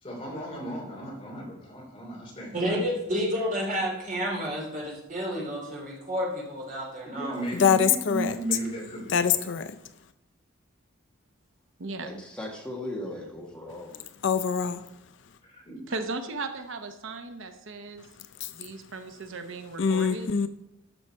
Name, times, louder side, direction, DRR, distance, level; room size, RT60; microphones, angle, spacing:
voice 1, 0.0-2.8 7.0-9.4 15.4-15.8, right 1 dB, 25° left, -3 dB, 3.0 m, -35 dB
voice 2, 2.5-7.5, equal, 40° right, -2 dB, 2.9 m, -30 dB
voice 3, 7.5-8.3 9.1-9.8 14.2-14.8 18.4-18.5 19.8-20.5, left 6 dB, 60° left, 12 dB, 0.4 m, -24 dB
voice 4, 12.0-14.0 14.8-14.9, left 1 dB, 5° left, -2 dB, 1.6 m, -38 dB
voice 5, 15.9-18.1 18.5-20.4, right 3 dB, 65° right, 7 dB, 0.8 m, -37 dB
13.0 x 6.3 x 4.6 m, 0.89 s
head